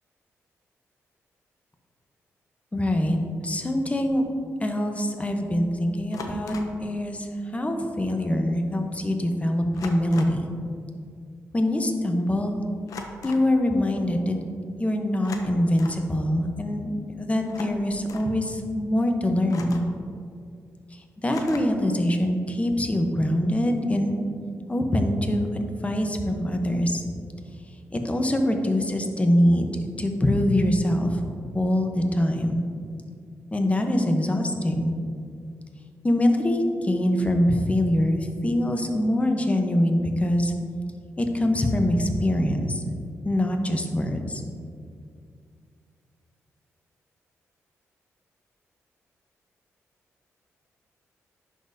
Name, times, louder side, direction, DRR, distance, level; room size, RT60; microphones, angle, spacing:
voice 1, 2.7-4.2 4.6-6.5 6.8-10.5 11.5-12.6 13.2-14.3 14.8-19.8 20.9-24.2 24.7-25.5 25.8-27.0 27.9-29.7 30.0-31.2 31.5-32.6 33.5-34.9 36.0-40.5 41.2-42.8 43.2-44.4, left 1 dB, 20° left, 4 dB, 0.9 m, -24 dB
sound 1, 4.0-4.2 6.1-6.8 8.2-8.3 8.5-8.8 9.7-10.5 12.9-13.5 15.1-16.1 17.4-18.3 19.5-20.0 21.3-21.9, left 3 dB, 75° left, 0.6 m, -40 dB
10.5 x 4.1 x 2.7 m, 2.2 s
supercardioid pair, 50°, 6 cm